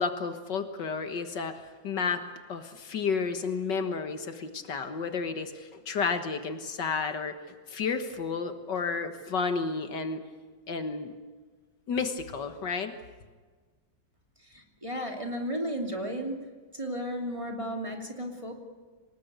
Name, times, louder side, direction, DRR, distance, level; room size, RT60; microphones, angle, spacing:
voice 1, 0.0-7.4 7.7-10.2 10.7-11.1 11.9-12.9, left 5 dB, 70° left, 8 dB, 2.0 m, -31 dB
voice 2, 14.5-16.4 16.7-18.5, equal, 15° right, 2 dB, 2.8 m, -34 dB
25.0 x 20.0 x 8.2 m, 1.4 s
omnidirectional pair, 2.0 m